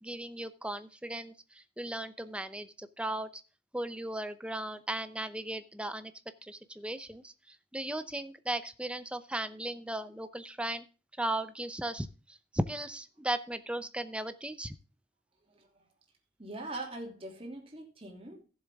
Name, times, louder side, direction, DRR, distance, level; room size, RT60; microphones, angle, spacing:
voice 1, 0.0-3.4 3.7-6.1 6.4-10.9 11.2-14.7, right 1 dB, 5° right, 0.7 m, -37 dB
voice 2, 15.5-15.8 16.4-18.4, right 2 dB, 30° right, 2.9 m, -42 dB
15.0 x 7.2 x 3.6 m
head